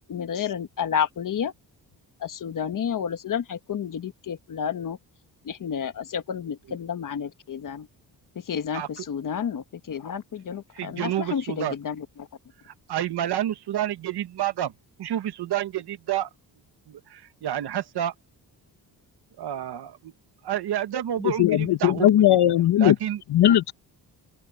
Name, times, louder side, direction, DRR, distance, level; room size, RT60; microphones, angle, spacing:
voice 1, 0.1-1.5 2.2-5.0 5.4-7.9 8.5-12.3, left 8 dB, 55° left, 1.6 m, -30 dB
voice 2, 8.7-9.1 10.7-11.8 12.7-14.7 15.0-16.3 16.9-18.1 19.4-20.1 20.4-22.1 22.4-23.2 23.5-23.6, right 11 dB, 85° right, 1.6 m, -29 dB
voice 3, 21.2-22.9 23.3-23.7, left 12 dB, 80° left, 1.3 m, -18 dB
open air
wide cardioid pair, 140°, 39 cm